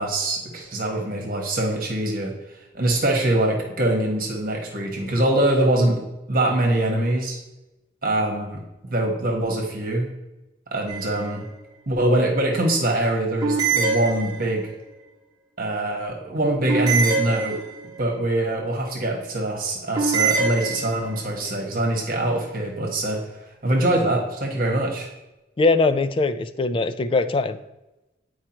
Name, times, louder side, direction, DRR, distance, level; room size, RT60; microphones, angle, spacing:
voice 1, 0.0-2.3 2.7-6.0 6.3-7.4 8.0-10.1 10.7-11.4 11.9-14.7 15.6-17.6 18.0-23.2 23.6-25.1, right 1 dB, 50° right, 0 dB, 1.3 m, -23 dB
sound 1, 10.9-11.5 13.4-14.7 16.7-18.0 19.9-21.2, right 4 dB, 20° right, 1.3 m, -24 dB
voice 2, 25.6-27.6, left 3 dB, 30° left, 11 dB, 0.3 m, -21 dB
9.0 x 4.7 x 2.9 m, 0.99 s
head